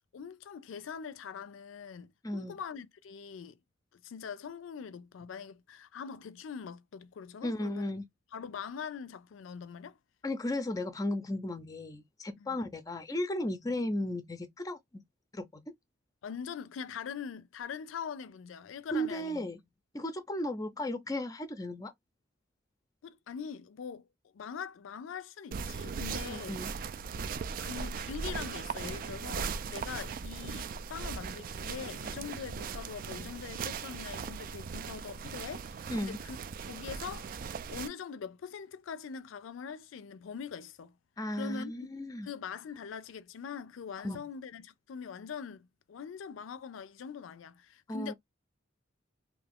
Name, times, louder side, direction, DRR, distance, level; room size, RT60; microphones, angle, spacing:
voice 1, 0.1-3.6 3.9-7.9 8.3-10.0 12.4-12.6 16.2-19.5 23.0-24.1 24.3-26.6 27.6-36.4 36.7-37.3 37.7-41.0 41.3-41.9 42.2-48.1, left 6 dB, 85° left, 0.4 m, -43 dB
voice 2, 2.2-2.6 7.4-8.0 10.2-14.8 15.3-15.6 18.9-19.6 19.9-21.9 26.2-26.7 35.9-36.2 41.2-42.3 44.0-44.2 47.9-48.1, left 1 dB, 20° left, 0.4 m, -35 dB
sound 1, 25.5-37.9, right 5 dB, 45° right, 0.3 m, -39 dB
2.6 x 2.4 x 3.4 m
head